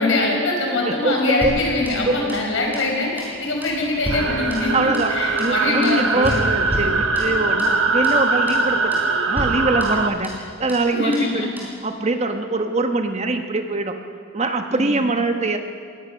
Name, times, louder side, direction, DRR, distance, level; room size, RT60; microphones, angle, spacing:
voice 1, 0.0-4.7 5.1-6.4 10.9-11.5 14.7-15.0, left 2 dB, 65° left, 0 dB, 5.5 m, -23 dB
voice 2, 0.8-1.6 2.1-2.4 3.3-3.4 4.7-5.1 5.4-9.0 9.3-11.5 11.8-14.0 14.3-15.6, right 2 dB, 30° right, 6 dB, 1.0 m, -23 dB
sound 1, 1.4-2.5 2.7-2.9 3.2-3.4 3.6-5.1 5.4-5.6 5.8-6.0 6.3-6.5 6.7-7.8 8.0-8.2 8.5-8.7 8.9-9.1 9.4-10.4 10.7-10.9 11.1-11.3 11.6-11.8, right 1 dB, 10° right, 4.7 m, -32 dB
Sliding door / Slam, 2.8-9.8, left 1 dB, 30° left, 4.9 m, -37 dB
sound 2, 4.1-10.1, right 3 dB, 65° right, 1.2 m, -22 dB
23.0 x 18.5 x 6.3 m, 2.3 s
head